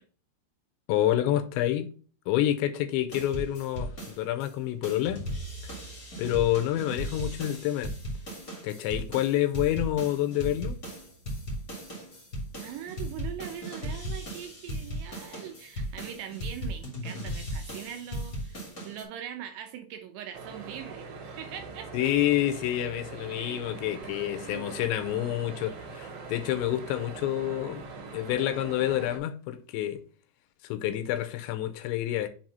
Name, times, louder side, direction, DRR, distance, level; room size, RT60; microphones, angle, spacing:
voice 1, 0.9-1.9 2.3-5.3 6.2-7.9 8.6-10.8 21.9-27.8 28.1-30.0 30.6-32.3, left 13 dB, 85° left, 2.8 m, -28 dB
sound 1, 3.1-4.5 4.8-19.0, equal, 65° left, 0.8 m, -37 dB
voice 2, 12.5-21.1 21.4-22.1 22.6-22.7 23.3-23.6 23.9-24.2 24.5-24.7, right 10 dB, 80° right, 2.6 m, -42 dB
sound 2, 20.3-29.2, right 4 dB, 60° right, 2.5 m, -42 dB
7.3 x 2.7 x 5.4 m
omnidirectional pair, 5.2 m